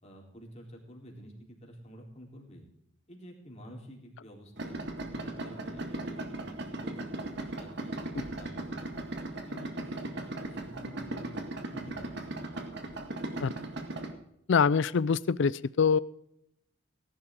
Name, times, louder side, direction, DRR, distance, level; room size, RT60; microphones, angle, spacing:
voice 1, 0.0-2.7 3.1-4.8 5.2-7.2 7.6-9.0 9.3-11.4 11.7-12.5, equal, 35° left, 0 dB, 3.8 m, -49 dB
Idling, 4.6-14.1, right 2 dB, 60° right, 1.9 m, -38 dB
voice 2, 14.5-16.0, left 6 dB, 65° left, 19 dB, 0.4 m, -24 dB
18.5 x 11.5 x 3.7 m, 0.76 s
head